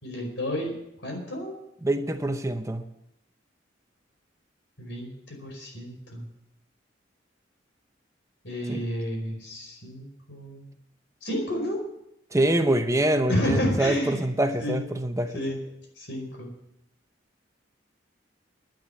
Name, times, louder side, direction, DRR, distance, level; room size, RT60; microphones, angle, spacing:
voice 1, 0.0-0.7 1.0-1.6 4.8-6.3 8.4-10.7 11.2-11.8 13.3-14.2 14.6-14.8 15.3-15.6 16.0-16.5, equal, 80° left, 2 dB, 4.9 m, -30 dB
voice 2, 1.8-2.8 8.7-8.8 12.3-15.4, right 1 dB, 15° right, 8 dB, 0.8 m, -25 dB
10.5 x 10.0 x 9.3 m, 0.82 s
head